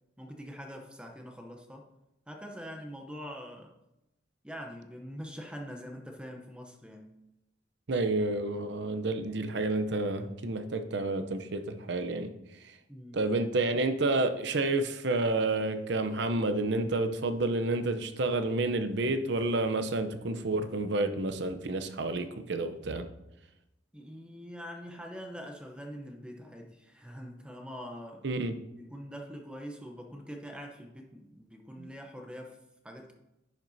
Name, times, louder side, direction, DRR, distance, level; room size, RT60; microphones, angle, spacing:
voice 1, 0.2-1.9 2.3-3.8 4.4-7.1 12.9-13.2 23.9-28.3 28.7-32.6 32.8-33.1, equal, 5° right, 0.7 m, -44 dB
voice 2, 7.9-12.3 13.1-23.0 28.2-28.6 31.8-31.9, right 2 dB, 60° right, 0.7 m, -30 dB
10.5 x 7.5 x 2.7 m
head